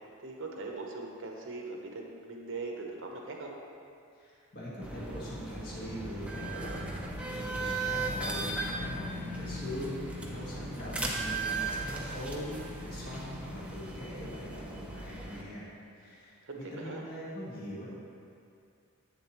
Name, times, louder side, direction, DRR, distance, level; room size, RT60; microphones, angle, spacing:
voice 1, 0.2-3.5 16.4-17.0, right 3 dB, 65° right, 1 dB, 0.9 m, -40 dB
voice 2, 4.2-17.9, equal, 50° left, -8 dB, 1.6 m, -42 dB
sound 1, 4.8-15.4, right 2 dB, 5° right, 0.6 m, -37 dB
8.0 x 7.0 x 3.0 m, 2.5 s
head